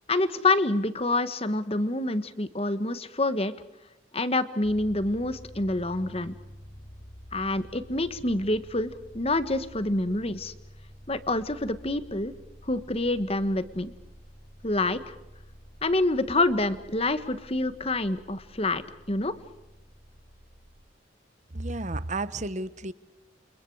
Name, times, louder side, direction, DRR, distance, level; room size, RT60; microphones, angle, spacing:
voice 1, 0.1-3.5 4.1-6.3 7.3-10.5 11.1-12.3 12.6-13.9 14.6-15.2 15.8-18.8 19.1-19.4, left 2 dB, 30° left, 12 dB, 1.4 m, -27 dB
sound 1, 4.6-20.9, equal, 50° left, 7.0 m, -49 dB
voice 2, 21.5-22.9, right 2 dB, 40° right, 15 dB, 1.1 m, -32 dB
29.5 x 28.5 x 4.8 m, 0.95 s
head